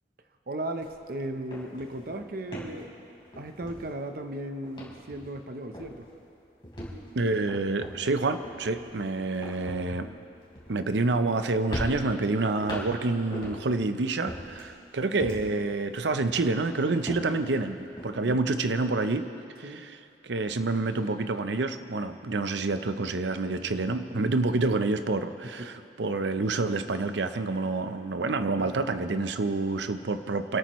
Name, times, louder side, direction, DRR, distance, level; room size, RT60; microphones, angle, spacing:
voice 1, 0.5-3.0 3.4-6.1 18.3-18.4 19.6-19.9 25.4-25.9, right 1 dB, 55° right, 7 dB, 0.8 m, -36 dB
sound 1, 0.8-1.0 1.3-4.3 4.6-5.5 5.7-6.1 6.6-11.3 11.7-13.8 14.2-15.7 16.1-18.1, equal, 30° left, 3.7 m, -40 dB
voice 2, 7.1-10.2 10.7-19.3 19.6-19.9 20.2-30.6, right 3 dB, 90° right, 9 dB, 0.7 m, -28 dB
26.0 x 13.5 x 3.1 m, 2.6 s
head